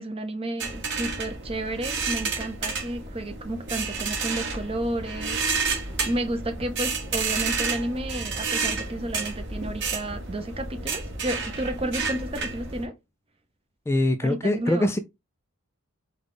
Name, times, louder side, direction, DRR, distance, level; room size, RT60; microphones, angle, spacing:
voice 1, 0.0-5.8 6.0-12.9 14.2-14.9, right 1 dB, 25° right, 0.7 m, -32 dB
sound 1, 0.6-12.8, right 4 dB, 55° right, 1.5 m, -30 dB
voice 2, 13.9-15.0, left 1 dB, 10° left, 0.3 m, -23 dB
5.1 x 2.4 x 3.8 m
head